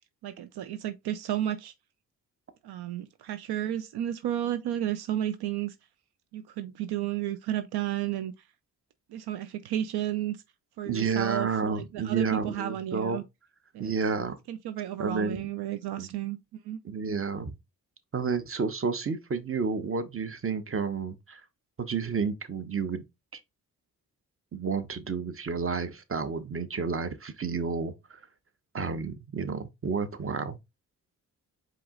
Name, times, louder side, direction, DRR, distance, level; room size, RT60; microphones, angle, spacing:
voice 1, 0.2-1.7 2.6-5.7 6.3-8.3 9.1-10.4 10.8-13.2 13.7-13.9 14.5-16.4 16.6-16.8, right 11 dB, 75° right, 0.6 m, -32 dB
voice 2, 10.9-13.2 13.8-14.4 15.0-15.5 16.0-16.1 16.8-17.5 18.1-21.4 21.8-23.0 23.3-23.4 24.5-28.2 28.7-30.6, right 5 dB, 35° right, 0.9 m, -31 dB
4.7 x 3.0 x 3.7 m
supercardioid pair, 45°, 39 cm